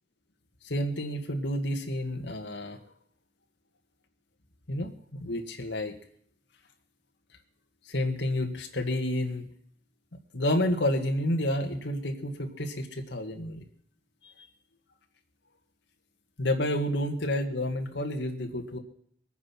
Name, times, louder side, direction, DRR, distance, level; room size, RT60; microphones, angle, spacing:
voice 1, 0.6-2.8 4.7-5.9 7.9-9.5 10.3-13.6 16.4-18.8, left 1 dB, 75° left, 4 dB, 1.9 m, -30 dB
21.5 x 9.4 x 6.0 m, 0.66 s
head